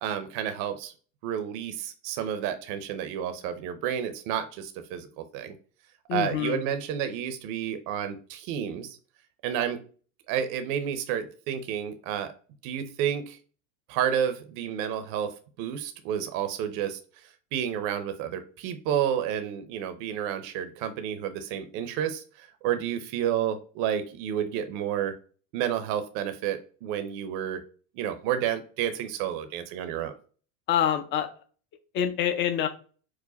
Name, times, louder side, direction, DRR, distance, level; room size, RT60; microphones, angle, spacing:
voice 1, 0.0-0.9 1.2-5.6 6.1-9.0 9.4-9.8 10.3-12.3 12.6-13.4 13.9-17.0 17.5-25.2 25.5-27.6 27.9-30.2, right 9 dB, 45° right, 10 dB, 0.7 m, -30 dB
voice 2, 6.1-6.6 30.7-31.3 31.9-32.7, left 9 dB, 25° left, 8 dB, 0.5 m, -26 dB
4.8 x 2.2 x 4.1 m, 0.39 s
supercardioid pair, 140°, 46 cm